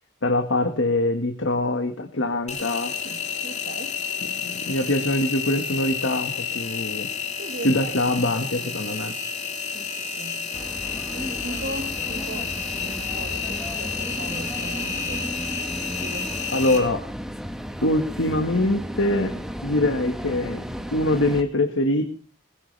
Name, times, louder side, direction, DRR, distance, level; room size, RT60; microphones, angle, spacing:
voice 1, 0.2-2.9 4.4-7.1 7.6-9.1 16.5-17.0 17.8-19.3 19.6-20.6 20.9-22.0, left 1 dB, 85° left, 6 dB, 1.7 m, -23 dB
Engine, 2.5-16.8, left 6 dB, 35° left, 3.6 m, -30 dB
voice 2, 3.0-4.0 7.4-9.1 9.7-10.4 11.1-12.5 12.8-15.3 16.0-16.7, right 2 dB, 70° right, 5 dB, 1.8 m, -39 dB
sound 1, 10.5-21.4, equal, ahead, 1.3 m, -34 dB
21.0 x 16.5 x 3.4 m, 0.38 s
head